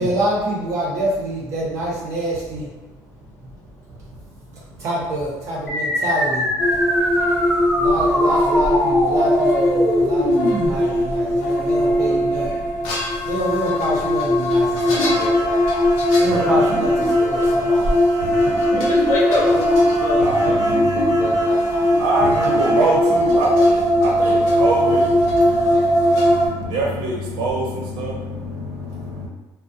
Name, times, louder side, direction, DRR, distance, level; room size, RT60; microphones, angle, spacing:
voice 1, 0.0-2.7 3.2-3.4 3.8-18.7 21.1-22.0 25.7-25.9 26.3-26.4 28.6-29.1, right 1 dB, 45° right, -5 dB, 0.7 m, -27 dB
sound 1, 5.7-10.7, left 1 dB, 10° left, 0.9 m, -22 dB
sound 2, 6.6-26.5, equal, 90° left, 0.7 m, -19 dB
sound 3, 14.9-22.7, right 1 dB, 60° left, 0.9 m, -29 dB
voice 2, 18.7-20.6 21.2-22.0, left 2 dB, 40° left, -2 dB, 0.6 m, -26 dB
voice 3, 19.9-29.3, right 2 dB, 80° right, -2 dB, 0.7 m, -25 dB
2.3 x 2.1 x 2.6 m, 1.1 s
cardioid pair, 160°, 7 cm